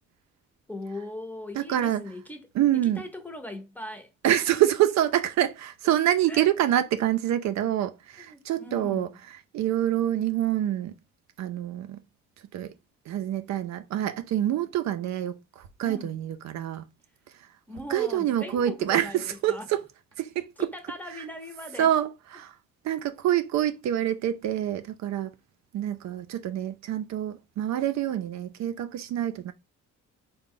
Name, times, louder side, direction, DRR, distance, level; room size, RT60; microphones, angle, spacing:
voice 1, 0.7-2.4 2.8-4.1 6.3-6.5 8.2-9.2 15.8-16.1 17.7-19.7 20.6-21.9, left 1 dB, 5° left, 0.7 m, -39 dB
voice 2, 1.5-2.1 2.5-3.0 4.2-9.1 9.5-11.0 11.4-12.0 12.5-12.7 13.1-16.9 17.3-17.5 17.9-19.8 20.2-20.7 21.1-21.2 21.8-22.6 22.8-25.3 25.7-29.5, right 12 dB, 65° right, 0.5 m, -26 dB
3.7 x 2.2 x 3.6 m
cardioid pair, 90°, 30 cm